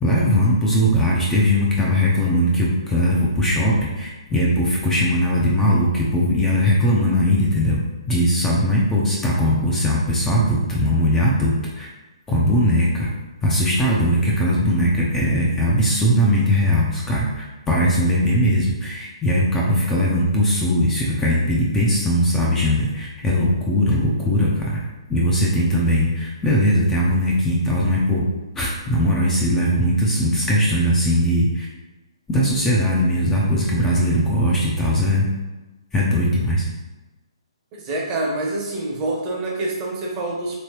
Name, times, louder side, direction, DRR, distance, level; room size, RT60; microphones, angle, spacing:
voice 1, 0.0-7.8 8.1-11.9 12.3-13.1 13.4-24.8 25.1-28.3 28.6-31.7 32.3-35.3 35.9-36.7, equal, 10° left, -4 dB, 0.5 m, -19 dB
voice 2, 37.7-40.6, right 2 dB, 25° right, -2 dB, 0.7 m, -26 dB
3.1 x 2.9 x 2.9 m, 1.1 s
hypercardioid pair, 140°, 3 cm